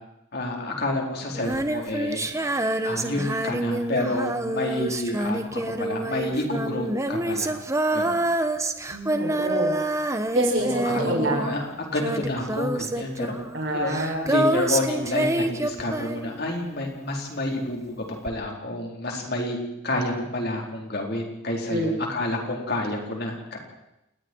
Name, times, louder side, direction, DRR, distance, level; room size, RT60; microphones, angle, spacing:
voice 1, 0.3-2.2 2.8-7.6 7.9-8.2 10.6-13.3 13.7-13.9 14.2-17.9 18.2-19.6 19.8-23.6, left 1 dB, 55° left, 1 dB, 4.3 m, -29 dB
Female singing, 1.3-16.7 18.3-18.4, right 1 dB, 15° right, 1.2 m, -27 dB
voice 2, 8.9-9.8 10.3-11.6 13.5-14.2 21.7-21.9, right 1 dB, 70° right, -1 dB, 7.2 m, -27 dB
28.5 x 19.5 x 4.7 m, 0.87 s
head